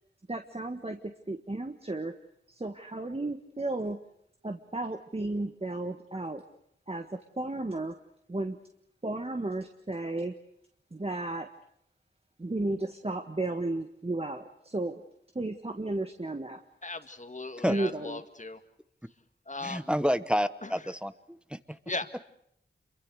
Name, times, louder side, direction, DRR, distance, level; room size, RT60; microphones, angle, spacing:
voice 1, 0.3-2.1 2.5-4.0 4.4-6.4 6.9-8.0 8.3-8.6 9.0-10.3 10.9-11.5 12.4-15.0 15.3-16.6 17.7-18.2, right 2 dB, 30° right, 6 dB, 1.6 m, -33 dB
voice 2, 16.8-18.6 19.5-19.9 20.6-20.8 21.9-22.2, left 3 dB, 40° left, 9 dB, 2.1 m, -38 dB
voice 3, 19.6-21.6, equal, 5° right, 12 dB, 1.1 m, -29 dB
27.0 x 23.5 x 6.5 m, 0.73 s
cardioid pair, 45°, 19 cm